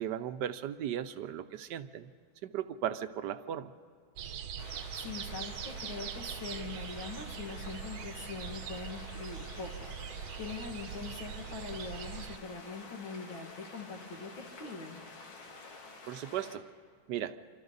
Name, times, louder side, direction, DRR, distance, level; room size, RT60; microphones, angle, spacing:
voice 1, 0.0-2.1 2.4-3.7 16.1-16.6 17.1-17.4, right 10 dB, 70° right, 10 dB, 1.2 m, -36 dB
sound 1, 4.2-12.4, right 8 dB, 90° right, 1.7 m, -42 dB
sound 2, 4.6-16.6, left 3 dB, 85° left, 2.8 m, -50 dB
voice 2, 4.9-15.0, left 4 dB, 70° left, 1 dB, 3.0 m, -43 dB
27.5 x 25.0 x 4.0 m, 2.1 s
omnidirectional pair, 2.2 m